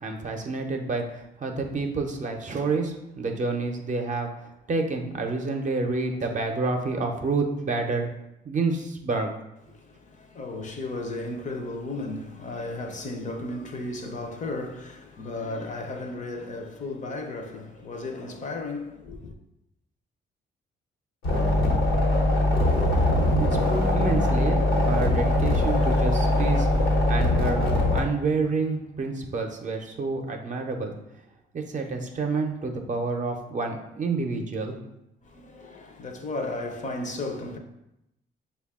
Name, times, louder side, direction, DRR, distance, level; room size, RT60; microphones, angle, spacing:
voice 1, 0.0-8.1 8.4-9.3 23.0-23.6 23.9-30.9 31.5-34.8, right 3 dB, 40° right, 0.6 m, -29 dB
voice 2, 9.7-19.3 35.2-37.6, left 2 dB, 40° left, 0.6 m, -34 dB
sound 1, 21.2-28.0, left 1 dB, 90° left, 1.0 m, -22 dB
5.1 x 2.3 x 3.5 m
cardioid pair, 90°, 20 cm